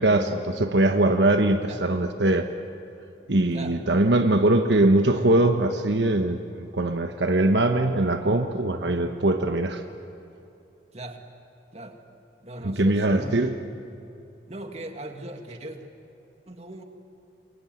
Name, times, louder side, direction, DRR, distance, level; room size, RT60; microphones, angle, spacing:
voice 1, 0.0-2.5 3.3-9.8 12.6-13.6, right 2 dB, 75° right, 6 dB, 1.2 m, -22 dB
voice 2, 12.4-13.5 14.5-15.8 16.5-16.8, right 1 dB, 35° right, 5 dB, 2.1 m, -38 dB
27.0 x 21.5 x 9.4 m, 2.8 s
head